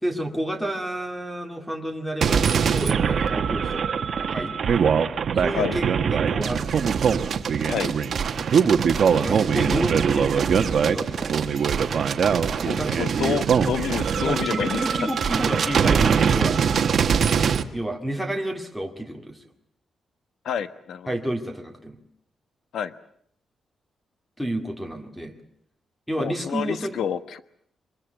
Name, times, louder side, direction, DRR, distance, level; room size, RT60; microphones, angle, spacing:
voice 1, 0.0-5.0 5.3-7.0 9.1-11.7 12.8-13.0 14.2-16.6 17.2-17.3 17.7-19.4 21.1-22.0 24.4-25.4 26.1-27.0, right 1 dB, ahead, 5 dB, 2.1 m, -30 dB
sound 1, 2.2-17.6, right 7 dB, 50° right, 1.2 m, -22 dB
voice 2, 12.6-14.8 20.4-21.1 22.7-22.9 26.2-27.4, left 8 dB, 75° left, 12 dB, 1.2 m, -28 dB
24.0 x 21.5 x 9.1 m, 0.68 s
wide cardioid pair, 170°, 0 cm